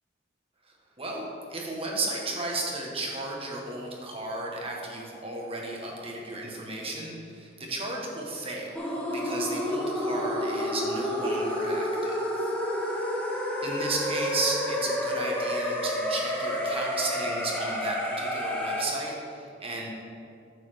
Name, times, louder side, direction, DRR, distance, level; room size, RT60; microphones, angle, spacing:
voice 1, 1.5-12.5 13.6-19.9, right 2 dB, 30° right, -1 dB, 1.3 m, -34 dB
sound 1, 8.7-18.9, equal, 5° left, 1.1 m, -30 dB
9.2 x 4.2 x 6.7 m, 2.5 s
head